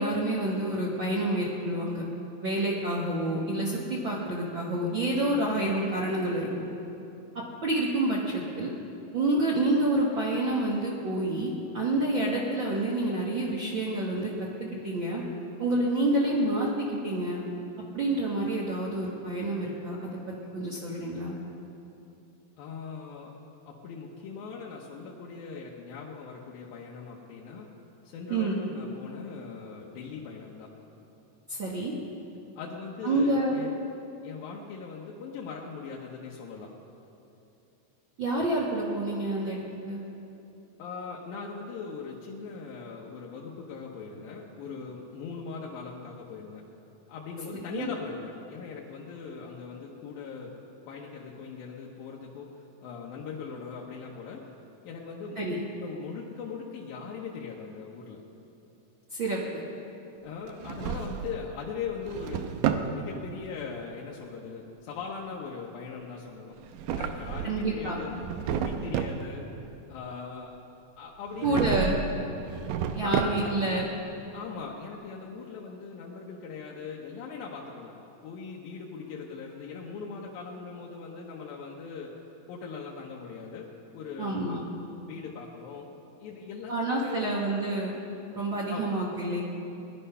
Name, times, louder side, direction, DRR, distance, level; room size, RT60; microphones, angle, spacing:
voice 1, 0.0-2.0 2.4-6.5 7.6-8.7 9.1-14.3 14.7-15.2 15.6-17.4 17.9-21.4 28.3-28.6 31.5-31.9 33.0-33.6 38.2-40.0 47.7-47.9 55.3-55.6 59.1-59.6 67.4-68.0 71.4-72.0 72.9-73.8 84.2-84.6 86.7-88.0 88.3-89.4, right 1 dB, 50° right, -4 dB, 1.5 m, -28 dB
voice 2, 22.6-23.3 23.7-27.7 28.0-30.7 32.6-33.7 34.2-36.7 40.8-46.6 47.1-50.6 50.9-52.5 52.8-54.4 54.8-58.2 60.2-66.6 66.9-69.4 69.9-70.5 71.0-72.5 73.0-73.6 74.3-77.9 78.2-82.1 82.5-84.6 85.1-85.8 86.2-87.4 88.7-88.8, left 5 dB, 85° left, -3 dB, 2.9 m, -40 dB
Drawer open or close, 60.5-61.5 61.9-62.9 66.6-67.7 68.1-69.2 71.4-72.1 72.4-73.7, right 8 dB, 85° right, 2.3 m, -31 dB
19.5 x 11.0 x 5.5 m, 2.8 s
omnidirectional pair, 4.0 m